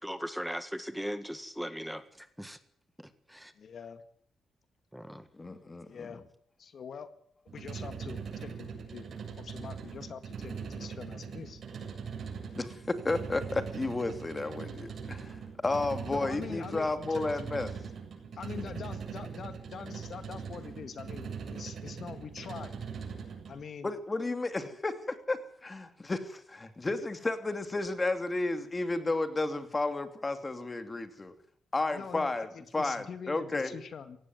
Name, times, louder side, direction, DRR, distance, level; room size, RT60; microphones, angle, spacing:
voice 1, 0.0-2.6 3.0-3.5 4.9-5.3, equal, ahead, 11 dB, 1.7 m, -39 dB
voice 2, 3.6-4.0 5.8-6.2 6.6-7.1 7.5-9.1 9.4-11.6 16.1-17.4 18.3-22.8 23.5-23.9 24.6-24.8 31.9-34.2, left 6 dB, 60° left, 11 dB, 1.9 m, -44 dB
voice 3, 5.3-6.2 12.5-17.7 23.8-31.3 31.7-33.8, left 2 dB, 25° left, 9 dB, 2.8 m, -32 dB
sound 1, 7.5-23.6, right 6 dB, 60° right, 8.0 m, -41 dB
17.5 x 16.0 x 9.4 m, 0.64 s
cardioid pair, 80°, 0 cm